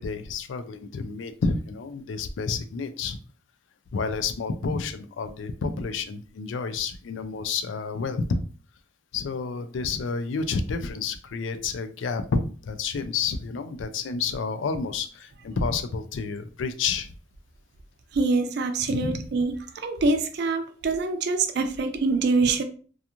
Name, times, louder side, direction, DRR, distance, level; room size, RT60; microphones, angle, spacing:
voice 1, 0.0-3.2 3.9-8.4 9.1-17.1 18.9-19.4, left 4 dB, 85° left, 9 dB, 0.4 m, -30 dB
voice 2, 18.1-19.5 19.8-22.6, right 3 dB, 60° right, 7 dB, 0.4 m, -24 dB
2.5 x 2.3 x 2.9 m, 0.40 s
head